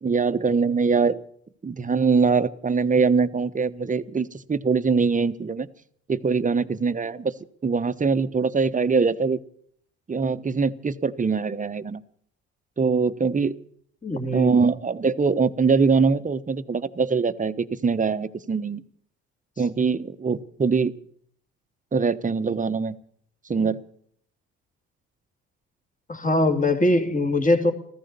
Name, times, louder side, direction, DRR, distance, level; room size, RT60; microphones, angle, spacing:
voice 1, 0.0-1.2 1.6-5.7 6.1-7.3 7.6-9.4 10.1-12.0 12.8-13.6 14.3-18.8 19.6-20.9 21.9-23.0 23.5-23.8, right 5 dB, 25° right, 12 dB, 1.1 m, -23 dB
voice 2, 14.0-14.5 26.1-27.7, left 1 dB, 25° left, 5 dB, 2.8 m, -21 dB
14.5 x 14.0 x 6.8 m, 0.62 s
supercardioid pair, 70°, 30 cm